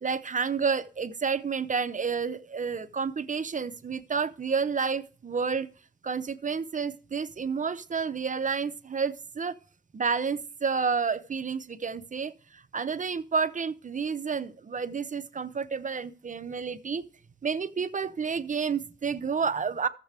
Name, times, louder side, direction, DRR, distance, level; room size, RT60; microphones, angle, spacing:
voice 1, 0.0-5.7 6.0-9.5 9.9-17.0 17.4-19.9, right 5 dB, 40° right, 0.6 m, -30 dB
14.0 x 7.4 x 3.4 m
cardioid pair, 70°, 19 cm